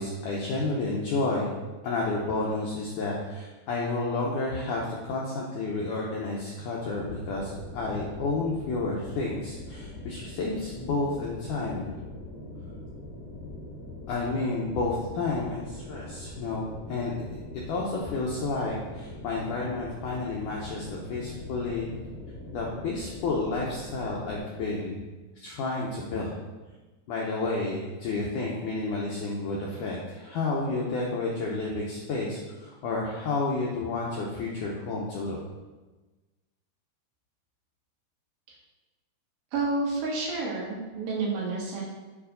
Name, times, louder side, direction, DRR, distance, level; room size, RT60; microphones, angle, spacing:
voice 1, 0.0-1.5 1.8-11.9 14.1-17.4 17.7-21.9 22.5-25.0 25.4-26.4 27.1-35.4, left 3 dB, 85° left, -3 dB, 1.8 m, -31 dB
sound 1, 6.9-24.4, left 1 dB, 45° left, 3.3 m, -42 dB
voice 2, 39.5-41.8, right 3 dB, 70° right, -3 dB, 2.6 m, -29 dB
6.1 x 4.7 x 5.0 m, 1.2 s
omnidirectional pair, 4.6 m